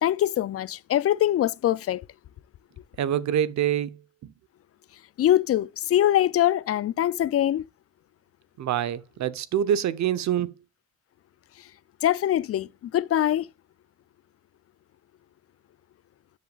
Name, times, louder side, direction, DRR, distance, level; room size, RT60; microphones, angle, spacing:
voice 1, 0.0-2.1 5.2-7.6 11.6-11.7 12.0-13.5, left 12 dB, 50° left, 0.4 m, -23 dB
voice 2, 3.0-4.3 8.6-10.5, right 10 dB, 65° right, 0.9 m, -26 dB
12.5 x 6.5 x 2.4 m
cardioid pair, 90°, 30 cm